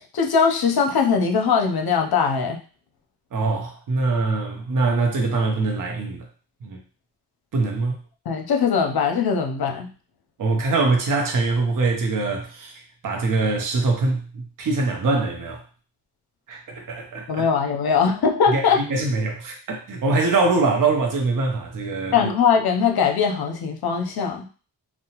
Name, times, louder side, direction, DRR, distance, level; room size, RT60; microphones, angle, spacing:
voice 1, 0.1-2.6 8.3-9.9 17.3-18.8 22.1-24.5, left 6 dB, 60° left, 4 dB, 0.6 m, -21 dB
voice 2, 3.3-6.3 6.6-6.8 7.5-8.0 10.4-15.6 16.5-17.4 18.5-22.3, right 3 dB, 50° right, 1 dB, 0.6 m, -23 dB
2.7 x 2.1 x 2.8 m, 0.37 s
wide cardioid pair, 110°, 42 cm